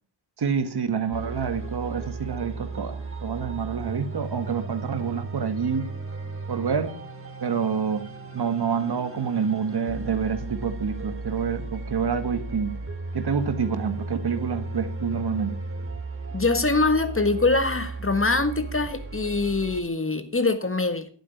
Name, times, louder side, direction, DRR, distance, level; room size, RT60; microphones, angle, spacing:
voice 1, 0.4-5.9 6.5-7.0 7.4-12.8 13.1-15.5, right 6 dB, 60° right, 1.7 m, -27 dB
sound 1, 1.1-19.8, right 3 dB, 30° right, 2.6 m, -35 dB
voice 2, 16.3-21.1, left 3 dB, 30° left, 1.6 m, -23 dB
11.0 x 8.9 x 5.8 m
cardioid pair, 65°, 43 cm